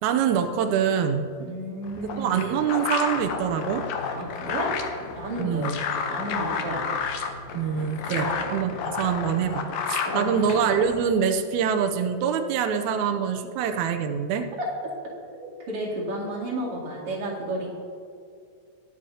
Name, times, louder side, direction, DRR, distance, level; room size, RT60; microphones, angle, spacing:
voice 1, 0.0-1.3 2.0-3.8 5.4-5.8 7.5-14.5, right 7 dB, 90° right, 7 dB, 1.6 m, -25 dB
voice 2, 1.4-2.4 4.1-4.7 5.2-5.8 6.1-6.9 8.1-8.5 10.0-10.5 15.3-17.7, right 1 dB, 45° right, -5 dB, 2.9 m, -32 dB
sound 1, 1.8-11.1, left 6 dB, 85° left, 1.5 m, -31 dB
sound 2, 3.0-9.1, right 1 dB, 45° left, 3.5 m, -46 dB
20.5 x 7.5 x 2.8 m, 2.4 s
omnidirectional pair, 4.1 m